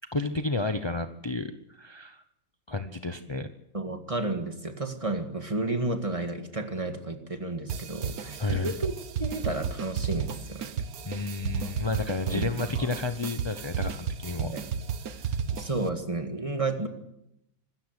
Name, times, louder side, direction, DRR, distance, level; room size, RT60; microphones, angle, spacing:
voice 1, 0.1-2.2 2.7-3.5 8.4-8.7 11.0-14.5, left 3 dB, 30° left, 8 dB, 0.5 m, -31 dB
voice 2, 3.7-8.9 9.2-10.7 12.3-12.4 12.7-12.9 14.4-14.7 15.5-16.9, right 2 dB, 20° right, 6 dB, 1.8 m, -32 dB
sound 1, 7.7-15.9, right 7 dB, 55° right, 1.4 m, -33 dB
25.5 x 13.5 x 8.2 m, 0.83 s
omnidirectional pair, 2.1 m